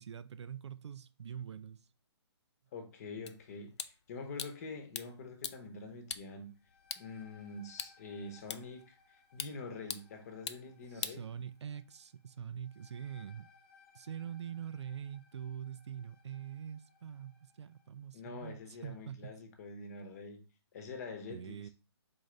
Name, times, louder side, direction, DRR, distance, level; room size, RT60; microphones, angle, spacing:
voice 1, 0.0-1.8 10.9-13.5 13.9-19.3 21.3-21.7, right 8 dB, 80° right, 0.4 m, -44 dB
voice 2, 2.7-6.5 7.0-11.2 18.1-20.4 20.7-21.7, left 3 dB, 35° left, 0.9 m, -46 dB
sound 1, 3.3-11.9, left 6 dB, 80° left, 0.5 m, -46 dB
sound 2, 6.4-17.9, left 5 dB, 5° left, 1.1 m, -66 dB
4.1 x 3.9 x 3.2 m
hypercardioid pair, 160°, 14 cm